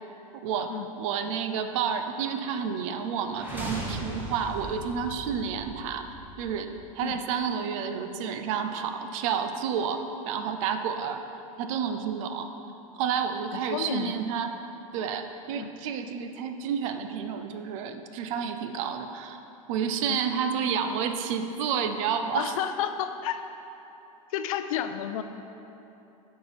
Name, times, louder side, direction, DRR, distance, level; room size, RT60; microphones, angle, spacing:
voice 1, 0.4-6.1 6.4-11.2 11.6-12.5 12.9-14.5 14.9-19.4 19.7-22.6, right 7 dB, 65° right, 8 dB, 0.6 m, -30 dB
sound 1, 3.3-7.3, right 1 dB, 10° right, 1.3 m, -39 dB
voice 2, 13.7-14.1 15.6-15.7 20.1-20.2 22.3-23.4 24.3-25.2, left 10 dB, 75° left, 9 dB, 0.5 m, -31 dB
7.9 x 4.5 x 5.0 m, 3.0 s
supercardioid pair, 115°, 18 cm